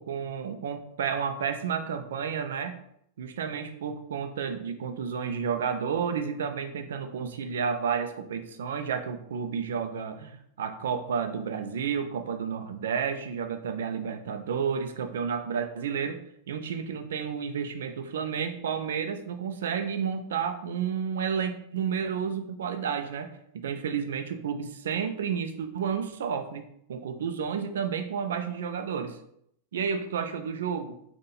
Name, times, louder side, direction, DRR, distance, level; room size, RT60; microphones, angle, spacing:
voice 1, 0.0-2.8 3.2-16.2 16.5-29.2 29.7-30.9, right 7 dB, 60° right, 7 dB, 0.4 m, -31 dB
2.8 x 2.5 x 4.2 m, 0.72 s
figure-of-eight pair, 90°, 0 cm